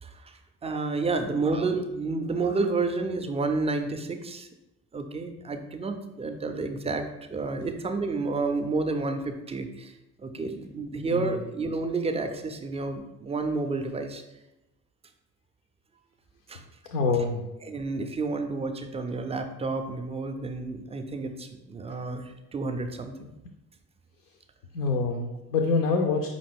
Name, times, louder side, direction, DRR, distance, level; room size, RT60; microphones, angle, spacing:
voice 1, 0.0-4.5 4.9-14.2 16.5-16.6 17.6-23.3, right 3 dB, 15° right, 7 dB, 0.3 m, -30 dB
voice 2, 16.9-17.4 24.7-26.3, left 4 dB, 80° left, 2 dB, 0.5 m, -25 dB
5.1 x 2.5 x 3.4 m, 0.93 s
figure-of-eight pair, 45°, 46 cm